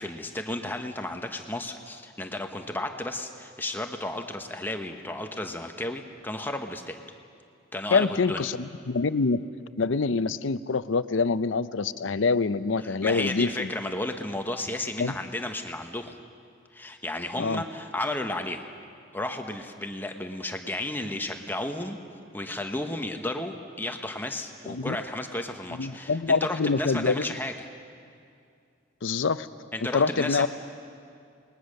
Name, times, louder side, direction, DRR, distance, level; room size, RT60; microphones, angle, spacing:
voice 1, 0.0-7.0 7.7-8.5 13.0-16.2 16.7-18.7 19.1-22.0 22.3-27.7 29.7-30.5, left 1 dB, 10° left, 5 dB, 1.1 m, -33 dB
voice 2, 7.9-9.5 9.8-13.7 15.0-15.1 17.4-17.6 24.7-25.0 25.8-27.2 29.0-29.5 29.9-30.5, left 4 dB, 80° left, 14 dB, 0.6 m, -25 dB
29.0 x 20.5 x 6.6 m, 2.4 s
head